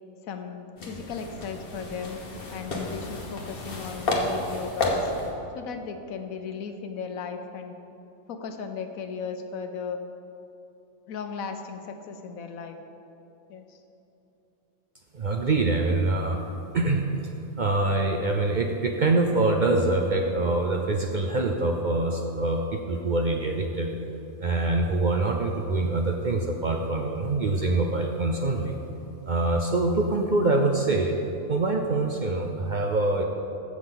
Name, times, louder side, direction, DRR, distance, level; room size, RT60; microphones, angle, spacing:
voice 1, 0.2-2.2 2.5-5.1 5.6-7.7 8.3-10.0 11.1-12.8 13.5-13.8, left 6 dB, 85° left, 6 dB, 1.2 m, -36 dB
sound 1, 0.8-5.3, left 2 dB, 45° left, 1.3 m, -31 dB
voice 2, 15.1-16.4 16.7-17.0 17.6-23.9 24.4-28.7 29.2-31.2 31.5-33.2, right 2 dB, 55° right, 2 dB, 0.5 m, -24 dB
15.0 x 6.1 x 3.9 m, 2.9 s
omnidirectional pair, 1.4 m